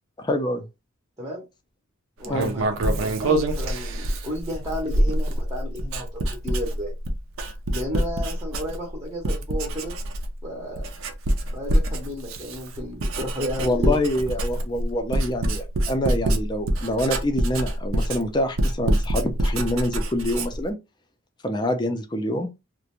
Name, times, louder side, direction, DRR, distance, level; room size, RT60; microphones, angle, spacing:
voice 1, 0.2-0.7 2.3-2.5 2.8-3.0 13.6-20.8 21.4-22.5, left 1 dB, 20° left, 0.4 m, -26 dB
voice 2, 2.2-6.9 7.7-9.9 10.4-10.9 11.5-14.0, left 1 dB, 15° right, 0.6 m, -33 dB
Writing, 2.2-9.0 9.2-10.4 10.7-20.7, right 1 dB, 65° right, 0.5 m, -25 dB
2.4 x 2.1 x 2.8 m
head